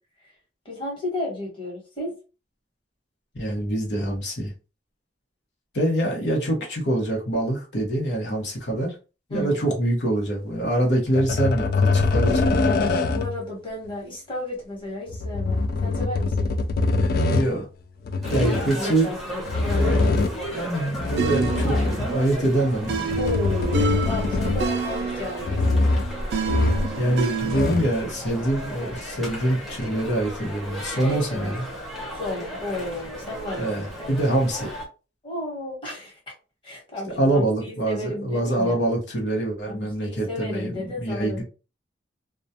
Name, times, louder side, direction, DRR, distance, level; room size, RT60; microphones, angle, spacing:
voice 1, 0.6-2.1 9.3-9.5 12.3-16.5 18.3-19.4 19.7-20.0 23.2-25.8 30.9-31.5 32.1-34.1 35.2-36.2 36.6-38.8 39.6-41.4, left 1 dB, 30° left, 1.1 m, -33 dB
voice 2, 3.3-4.5 5.7-8.9 9.3-12.7 17.3-17.7 18.3-19.1 19.9-20.0 20.5-23.2 23.8-23.9 27.0-31.7 33.6-34.7 37.2-41.4, right 1 dB, 80° left, 0.9 m, -25 dB
sound 1, 11.2-13.4 15.1-17.5 18.0-18.7 19.4-20.5 21.0-22.2 22.8-24.9 25.4-26.1 26.5-27.0 27.3-28.0 28.9-29.0, left 3 dB, 55° left, 0.3 m, -23 dB
sound 2, 18.2-34.9, equal, ahead, 0.7 m, -35 dB
sound 3, 21.2-28.0, right 4 dB, 70° right, 0.4 m, -29 dB
2.3 x 2.2 x 2.7 m
head